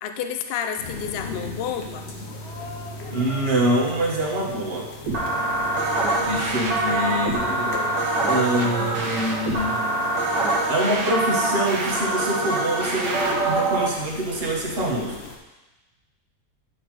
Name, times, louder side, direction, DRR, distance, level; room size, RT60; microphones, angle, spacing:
voice 1, 0.0-2.1, left 8 dB, 75° left, 7 dB, 0.5 m, -30 dB
sound 1, 0.8-15.4, left 2 dB, 50° left, 1.0 m, -38 dB
voice 2, 3.1-4.9 6.2-7.8 8.3-9.8 10.7-15.2, right 1 dB, 40° right, -2 dB, 1.3 m, -25 dB
sound 2, 5.1-13.9, right 2 dB, 85° right, 1.7 m, -24 dB
9.9 x 4.0 x 4.7 m, 1.1 s
omnidirectional pair, 1.8 m